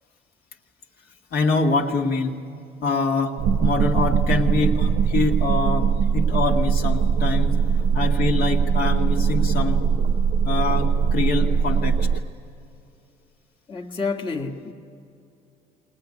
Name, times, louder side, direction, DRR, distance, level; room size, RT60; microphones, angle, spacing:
voice 1, 1.3-2.3 2.8-5.9 6.1-9.8 10.4-12.1, left 3 dB, 60° left, 1 dB, 2.0 m, -25 dB
sound 1, 3.4-12.2, right 6 dB, 65° right, 0.8 m, -21 dB
voice 2, 13.7-14.7, left 4 dB, 30° left, 0 dB, 1.5 m, -29 dB
21.0 x 19.5 x 9.9 m, 2.6 s
cardioid pair, 110°, 17 cm